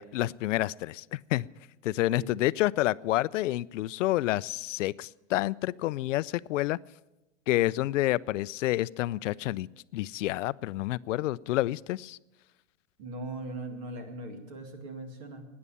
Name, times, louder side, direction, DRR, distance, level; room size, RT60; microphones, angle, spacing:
voice 1, 0.0-1.5 1.8-6.8 7.5-9.7 9.9-12.2, left 16 dB, 85° left, 20 dB, 0.5 m, -29 dB
voice 2, 13.0-15.4, right 2 dB, 35° right, 6 dB, 2.1 m, -39 dB
12.5 x 9.7 x 10.0 m, 1.0 s
supercardioid pair, 170°, 36 cm